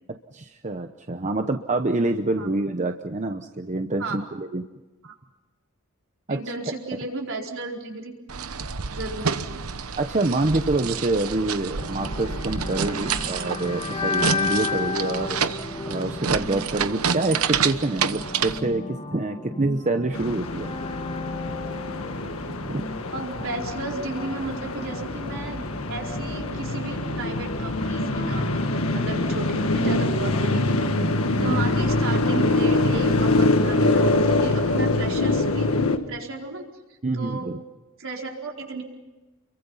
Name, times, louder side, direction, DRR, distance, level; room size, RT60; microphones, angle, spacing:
voice 1, 0.3-4.6 6.3-6.4 10.0-15.4 15.9-18.8 19.1-20.7 21.5-21.6 22.6-22.8 31.4-31.5 37.0-37.6, right 2 dB, 35° right, 6 dB, 0.9 m, -26 dB
voice 2, 6.3-8.1 8.4-8.5 8.9-9.6 14.6-14.8 23.1-30.8 31.4-35.8 36.1-36.7 37.1-37.5 38.0-38.8, right 3 dB, 65° right, 0 dB, 4.5 m, -34 dB
sound 1, 8.3-18.6, right 6 dB, 90° right, 1.1 m, -28 dB
sound 2, 11.8-29.7, left 3 dB, 30° left, 2.1 m, -34 dB
sound 3, 20.1-36.0, left 2 dB, 75° left, 1.8 m, -24 dB
30.0 x 23.0 x 5.7 m, 1.1 s
head